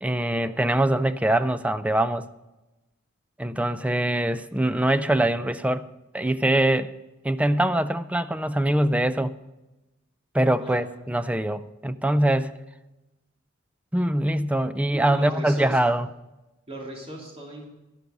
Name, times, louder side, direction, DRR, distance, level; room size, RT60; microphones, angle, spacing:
voice 1, 0.0-2.3 3.4-5.9 6.1-6.9 7.2-9.3 10.3-12.5 13.9-16.1, right 1 dB, 5° right, 13 dB, 0.4 m, -23 dB
voice 2, 10.6-10.9 14.9-15.8 16.7-17.7, right 1 dB, 30° right, -2 dB, 3.3 m, -37 dB
12.5 x 11.5 x 5.3 m, 1.0 s
head